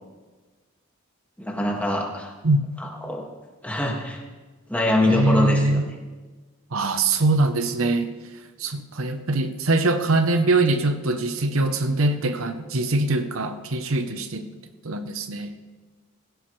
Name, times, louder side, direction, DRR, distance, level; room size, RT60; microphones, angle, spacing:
voice 1, 1.4-2.3 2.8-3.2 3.6-4.2 4.7-5.8, left 1 dB, 5° left, -1 dB, 1.9 m, -24 dB
voice 2, 5.1-5.8 6.7-8.1 8.6-14.5 14.8-15.5, right 2 dB, 80° right, 9 dB, 0.8 m, -23 dB
17.5 x 16.5 x 3.2 m, 1.3 s
head